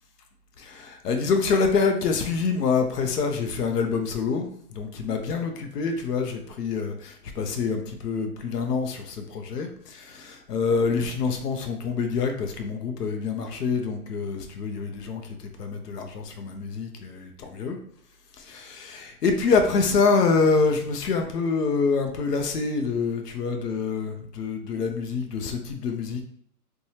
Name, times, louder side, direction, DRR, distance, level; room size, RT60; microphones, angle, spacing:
voice 1, 0.6-17.8 18.4-26.2, left 4 dB, 90° left, 5 dB, 0.6 m, -26 dB
2.9 x 2.2 x 2.7 m, 0.66 s
hypercardioid pair, 150°, 46 cm